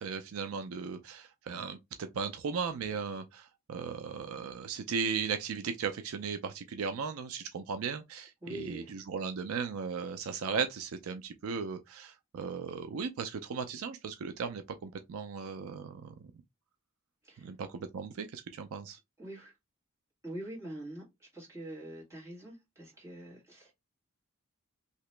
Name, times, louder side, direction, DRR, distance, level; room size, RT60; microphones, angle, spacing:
voice 1, 0.0-16.1 17.4-17.7 17.9-19.0, right 6 dB, 65° right, 0.4 m, -37 dB
voice 2, 8.4-9.0 17.2-17.6 19.2-19.6 20.2-23.7, right 1 dB, 15° right, 1.8 m, -44 dB
2.9 x 2.8 x 3.2 m
head